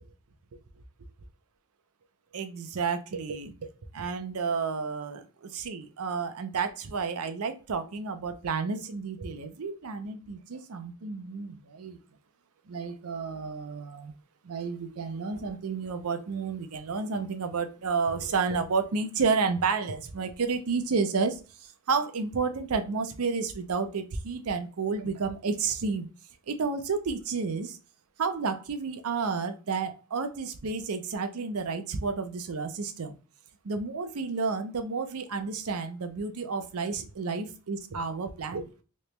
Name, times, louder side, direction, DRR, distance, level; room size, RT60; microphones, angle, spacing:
voice 1, 2.3-3.5 3.9-12.0 12.7-14.1 14.4-26.1 26.5-27.8 28.2-33.2 33.6-38.8, right 5 dB, 70° right, 9 dB, 0.5 m, -31 dB
3.2 x 2.9 x 3.2 m, 0.33 s
head